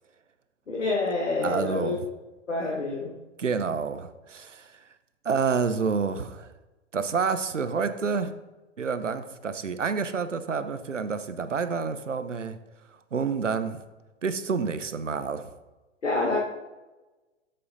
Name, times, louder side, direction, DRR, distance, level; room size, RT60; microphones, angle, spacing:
voice 1, 0.7-1.9 2.5-3.1 16.0-16.4, left 3 dB, 80° left, -3 dB, 1.8 m, -27 dB
voice 2, 1.4-2.1 3.4-4.7 5.2-6.5 6.9-8.3 8.8-12.6 13.1-13.8 14.2-15.5, right 5 dB, 85° right, 11 dB, 0.8 m, -28 dB
12.0 x 7.6 x 2.7 m, 1.1 s
figure-of-eight pair, 110°, 36 cm